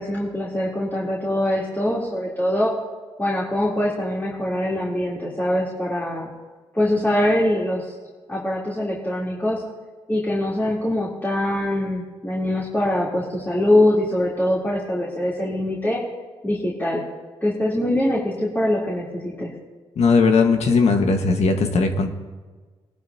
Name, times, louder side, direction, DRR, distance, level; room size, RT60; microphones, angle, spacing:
voice 1, 0.0-2.7 3.2-6.3 6.7-7.9 8.3-9.6 10.1-16.0 16.4-17.0 17.4-19.5, left 1 dB, 15° left, -6 dB, 3.5 m, -23 dB
voice 2, 20.0-22.1, left 4 dB, 65° left, 5 dB, 1.6 m, -18 dB
20.5 x 12.0 x 2.9 m, 1.3 s
supercardioid pair, 50°, 12 cm